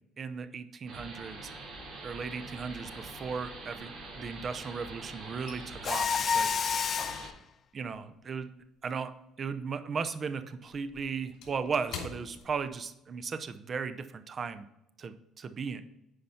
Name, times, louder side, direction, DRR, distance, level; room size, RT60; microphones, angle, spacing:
voice 1, 0.2-1.5 2.0-3.9 4.2-6.5 7.7-8.5 8.8-9.1 9.4-14.7 15.0-15.8, right 5 dB, 35° right, 11 dB, 0.6 m, -36 dB
sound 1, 0.9-7.3, right 2 dB, 60° right, 3.5 m, -44 dB
sound 2, 1.9-2.4 2.7-4.7 5.0-9.7 9.9-13.3 13.6-13.8 14.2-14.5, left 5 dB, 85° left, 2.5 m, -49 dB
Mechanisms, 5.8-7.3, left 6 dB, 40° left, 0.4 m, -29 dB
9.9 x 5.1 x 4.2 m, 0.86 s
cardioid pair, 135°, 0 cm